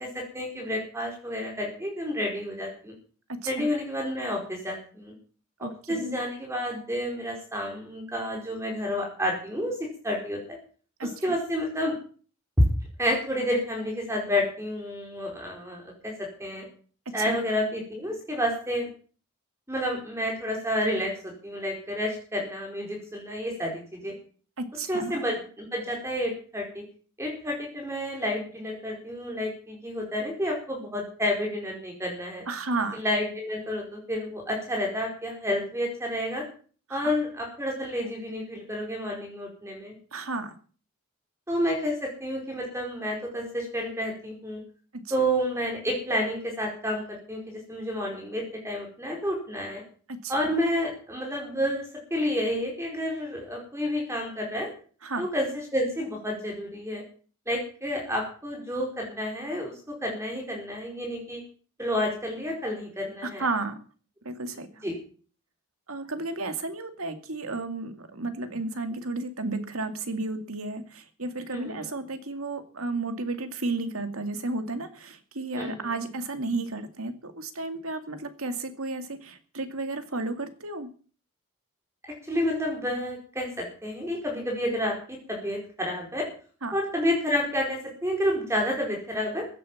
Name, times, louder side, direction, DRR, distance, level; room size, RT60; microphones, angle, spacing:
voice 1, 0.0-2.9 3.5-5.1 5.6-10.6 11.0-12.0 13.0-16.6 17.1-18.9 19.7-24.1 24.9-26.8 27.2-32.4 32.9-36.4 36.9-39.9 41.5-44.6 45.1-49.8 50.3-54.7 55.2-57.0 57.5-61.4 61.8-63.4 64.8-64.9 71.5-71.9 75.5-75.9 82.3-86.3 86.7-89.5, equal, 15° right, 0 dB, 4.5 m, -30 dB
voice 2, 5.6-6.2 11.0-11.3 17.3-17.4 24.6-25.2 32.5-33.0 36.9-37.0 40.1-40.5 50.2-50.3 55.0-55.2 63.2-63.8 64.2-64.7 65.9-80.9 86.6-86.7, right 3 dB, 75° right, 8 dB, 2.3 m, -33 dB
16.0 x 9.6 x 7.3 m, 0.41 s
head